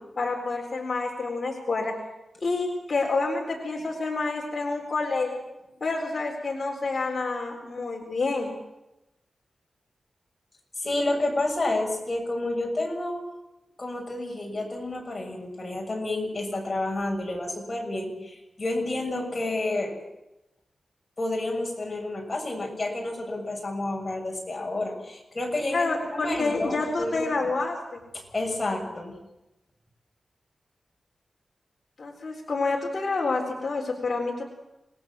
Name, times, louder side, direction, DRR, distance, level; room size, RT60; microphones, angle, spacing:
voice 1, 0.2-1.9 2.4-5.4 5.8-8.5 25.7-28.0 32.0-34.4, left 3 dB, 40° left, -1 dB, 4.1 m, -28 dB
voice 2, 10.8-13.2 13.8-20.0 21.2-27.3 28.1-29.2, left 2 dB, 25° left, 0 dB, 6.9 m, -30 dB
27.5 x 19.5 x 7.6 m, 0.95 s
wide cardioid pair, 170°, 0 cm